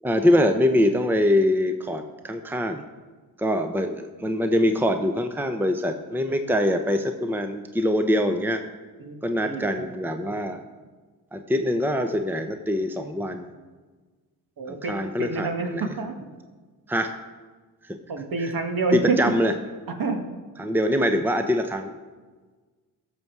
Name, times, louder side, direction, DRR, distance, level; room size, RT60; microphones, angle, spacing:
voice 1, 0.0-2.8 3.4-8.6 9.2-10.6 11.3-13.5 14.7-15.9 16.9-17.1 17.8-18.0 18.4-18.5 18.9-19.5 20.6-21.9, left 1 dB, 5° right, 6 dB, 0.9 m, -24 dB
voice 2, 9.0-9.9 10.2-10.4 14.6-16.1 18.1-19.2 20.0-20.2, right 4 dB, 50° right, 4 dB, 1.9 m, -28 dB
14.0 x 6.9 x 4.8 m, 1.4 s
supercardioid pair, 50°, 44 cm